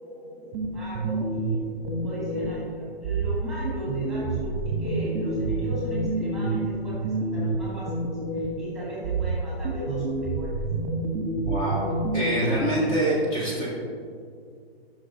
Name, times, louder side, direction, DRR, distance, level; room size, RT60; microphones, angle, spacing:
voice 1, 0.0-1.7 2.0-10.7, equal, ahead, -8 dB, 2.0 m, -38 dB
sound 1, 0.5-2.7 3.0-8.7 9.0-12.6, right 2 dB, 25° right, 1.1 m, -28 dB
voice 2, 11.5-11.9 12.1-13.7, right 1 dB, 30° left, -5 dB, 1.8 m, -25 dB
10.5 x 6.0 x 3.0 m, 2.2 s
hypercardioid pair, 155°, 31 cm